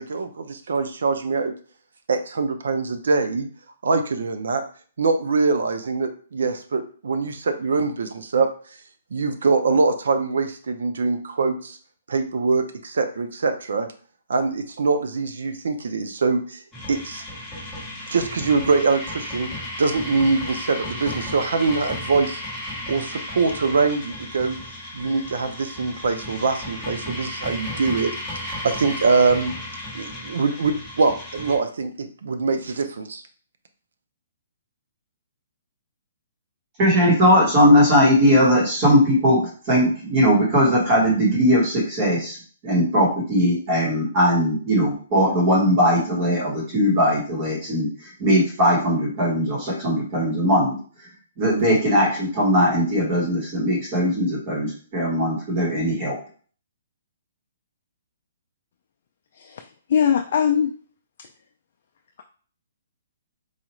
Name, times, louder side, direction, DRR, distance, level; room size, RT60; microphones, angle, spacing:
voice 1, 0.0-1.5 2.1-3.5 3.8-4.6 5.0-8.5 9.1-11.8 12.1-13.9 14.3-16.6 16.9-17.2 18.1-19.5 19.8-22.4 22.9-24.6 24.9-29.6 29.9-33.2, right 4 dB, 75° right, 8 dB, 0.6 m, -23 dB
sound 1, 16.7-31.6, left 1 dB, ahead, 1.0 m, -34 dB
voice 2, 36.8-42.4 42.6-47.9 48.2-50.8 51.4-56.2, equal, 25° right, -3 dB, 1.2 m, -19 dB
voice 3, 59.4-60.7, left 8 dB, 45° left, 4 dB, 0.3 m, -21 dB
4.1 x 2.4 x 3.0 m, 0.43 s
hypercardioid pair, 175°, 0 cm